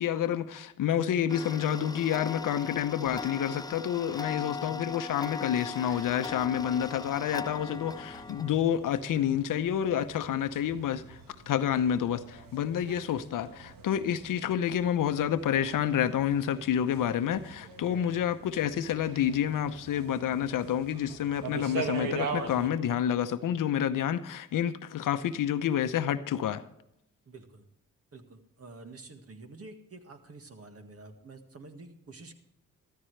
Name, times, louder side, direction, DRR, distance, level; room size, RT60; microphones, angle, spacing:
voice 1, 0.0-11.2 11.5-26.6, left 9 dB, 70° left, 0.8 m, -29 dB
Tick-tock, 1.3-8.5, left 5 dB, 10° left, 0.5 m, -39 dB
voice 2, 4.6-5.0 27.3-27.7 28.1-32.3, right 3 dB, 45° right, 1.8 m, -48 dB
sound 1, 5.9-22.7, right 4 dB, 85° right, 1.5 m, -43 dB
14.0 x 13.0 x 3.3 m
cardioid pair, 60°, 33 cm